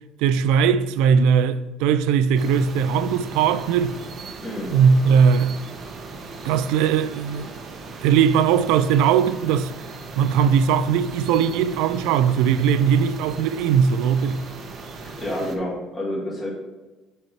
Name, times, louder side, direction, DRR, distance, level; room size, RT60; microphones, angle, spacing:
voice 1, 0.2-4.0 4.7-5.6 6.4-7.6 8.0-9.7 10.2-14.4, right 7 dB, 80° right, 0.3 m, -19 dB
sound 1, 2.4-15.6, right 3 dB, 40° right, 0.9 m, -38 dB
voice 2, 4.4-4.7 15.2-16.5, left 1 dB, 15° left, 1.9 m, -28 dB
6.4 x 4.4 x 4.4 m
cardioid pair, 130°, 0 cm